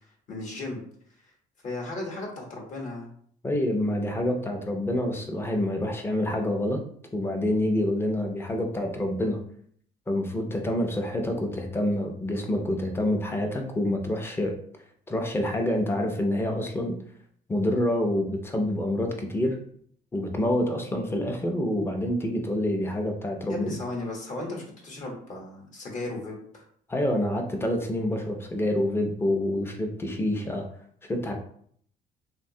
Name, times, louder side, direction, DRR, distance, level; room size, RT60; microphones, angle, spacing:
voice 1, 0.3-0.8 1.6-3.1 23.4-26.6, left 2 dB, 45° left, -1 dB, 0.9 m, -35 dB
voice 2, 3.4-6.8 7.1-9.4 10.1-14.5 15.1-17.0 17.5-19.6 20.1-23.7 26.9-30.7 31.1-31.3, left 1 dB, 15° left, 3 dB, 0.5 m, -27 dB
3.0 x 2.2 x 2.7 m, 0.63 s
cardioid pair, 110°, 17 cm